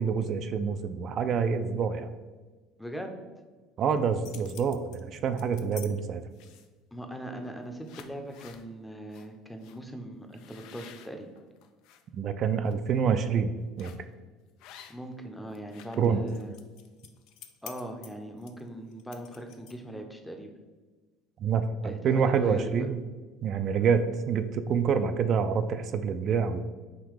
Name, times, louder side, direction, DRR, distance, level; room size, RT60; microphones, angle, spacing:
voice 1, 0.0-2.1 3.8-6.2 12.1-13.9 16.0-16.2 21.4-23.0 23.4-26.6, right 6 dB, 50° right, 10 dB, 0.3 m, -27 dB
voice 2, 2.8-3.1 6.9-11.3 14.9-16.5 17.6-20.5 21.8-22.9, right 1 dB, 5° left, 5 dB, 0.6 m, -40 dB
sound 1, 4.0-5.9 6.3-6.8 7.4-7.6 7.8-8.6 9.1-9.3 9.6-9.8 10.3-12.0 12.5-12.7 13.8-14.1 14.6-15.2 15.5-20.0, left 10 dB, 70° left, 0.4 m, -50 dB
3.7 x 2.9 x 4.7 m, 1.3 s
supercardioid pair, 90°, 0 cm